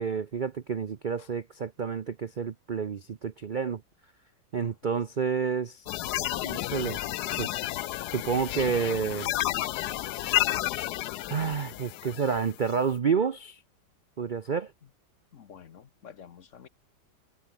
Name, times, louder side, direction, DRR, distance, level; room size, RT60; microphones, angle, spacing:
voice 1, 0.0-3.8 4.5-5.9 6.4-7.0 7.4-7.6 8.1-9.3 11.3-13.6 14.2-14.7, right 6 dB, 85° right, 0.4 m, -29 dB
voice 2, 4.6-5.0 15.3-16.7, left 7 dB, 50° left, 1.1 m, -50 dB
sound 1, 5.9-12.8, left 15 dB, 75° left, 1.1 m, -31 dB
omnidirectional pair, 1.9 m